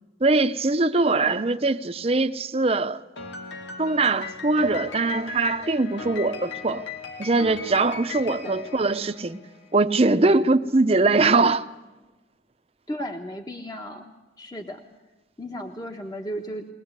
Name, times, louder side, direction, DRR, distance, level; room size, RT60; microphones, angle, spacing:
voice 1, 0.2-3.0 3.8-6.8 7.2-9.4 9.7-11.6, right 3 dB, 35° right, 0.8 m, -22 dB
voice 2, 1.1-1.4 8.3-8.6 12.9-14.8 15.4-16.7, equal, 20° left, 1.3 m, -35 dB
Piano, 3.2-9.7, left 5 dB, 90° left, 2.2 m, -38 dB
21.5 x 19.5 x 8.2 m
head